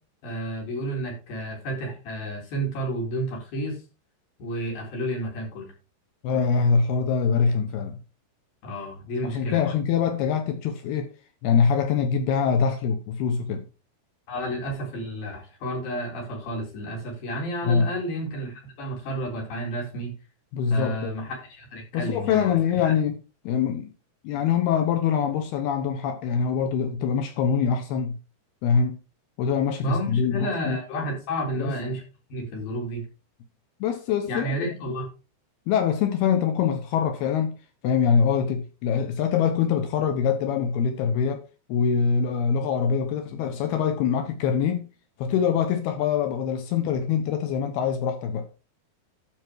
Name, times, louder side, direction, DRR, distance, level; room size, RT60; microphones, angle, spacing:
voice 1, 0.2-3.8 4.4-5.7 8.6-9.7 14.3-20.1 20.7-22.9 29.8-32.0 32.3-33.1 34.3-35.1, right 1 dB, 60° left, 5.5 m, -31 dB
voice 2, 6.2-8.0 9.2-11.1 11.4-13.7 17.7-17.9 20.5-21.1 21.9-23.2 23.4-23.9 24.2-28.2 28.6-29.0 29.4-30.8 31.6-31.7 33.8-34.7 35.7-37.6 37.8-44.9 45.2-48.5, left 6 dB, 75° left, 2.8 m, -24 dB
12.5 x 5.5 x 4.6 m
omnidirectional pair, 4.9 m